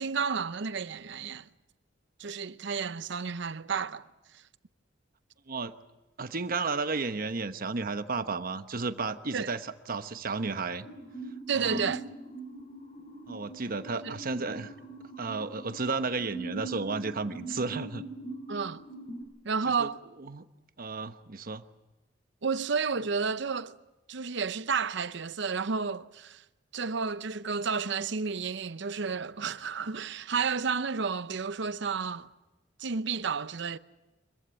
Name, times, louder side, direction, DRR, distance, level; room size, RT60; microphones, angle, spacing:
voice 1, 0.0-1.4 2.2-4.1 9.3-9.5 11.5-12.0 14.0-14.1 18.5-18.8 19.4-20.0 22.4-23.8 24.1-26.4 26.7-32.3 32.8-33.8, right 5 dB, 70° right, 0.7 m, -31 dB
voice 2, 6.2-10.9 11.5-11.9 13.3-14.7 15.2-18.0 19.7-19.9 20.2-20.5 20.8-21.6, right 4 dB, 50° right, 1.0 m, -33 dB
sound 1, 10.8-19.2, right 2 dB, 40° left, 6.3 m, -42 dB
25.0 x 15.0 x 9.9 m
head